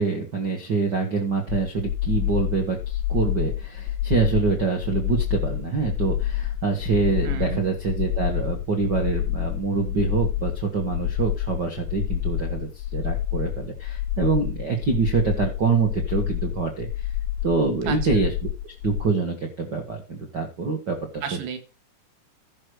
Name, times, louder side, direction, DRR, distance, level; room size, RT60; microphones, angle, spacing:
voice 1, 0.0-17.1 17.4-18.3 18.6-21.2, right 4 dB, 90° right, 0.9 m, -25 dB
sound 1, 1.5-19.1, left 12 dB, 85° left, 2.1 m, -28 dB
voice 2, 7.3-7.6 17.9-18.3 21.2-21.6, right 8 dB, 75° right, 3.6 m, -32 dB
13.0 x 6.4 x 4.8 m
omnidirectional pair, 5.0 m